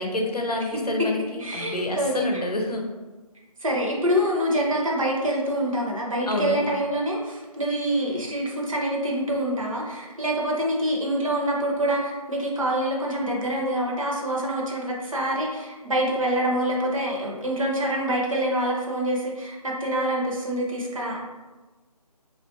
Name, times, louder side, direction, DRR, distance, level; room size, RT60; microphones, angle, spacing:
voice 1, 0.0-2.8 6.3-6.7, left 2 dB, 80° left, 1 dB, 0.6 m, -28 dB
voice 2, 1.4-2.4 3.6-21.2, right 1 dB, 60° right, -2 dB, 0.8 m, -26 dB
3.3 x 2.5 x 2.5 m, 1.2 s
figure-of-eight pair, 155°, 20 cm